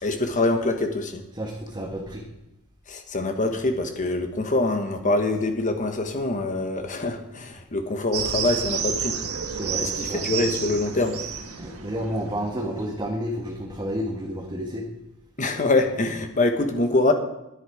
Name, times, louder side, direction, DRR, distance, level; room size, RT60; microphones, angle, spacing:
voice 1, 0.0-1.2 2.9-9.1 9.8-11.2 15.4-17.1, left 2 dB, 35° left, 6 dB, 1.3 m, -24 dB
voice 2, 1.3-2.2 9.5-10.2 11.6-14.8, equal, 20° right, -1 dB, 1.4 m, -30 dB
sound 1, 8.1-12.9, right 7 dB, 90° right, 1.4 m, -30 dB
11.5 x 9.9 x 4.9 m, 0.89 s
head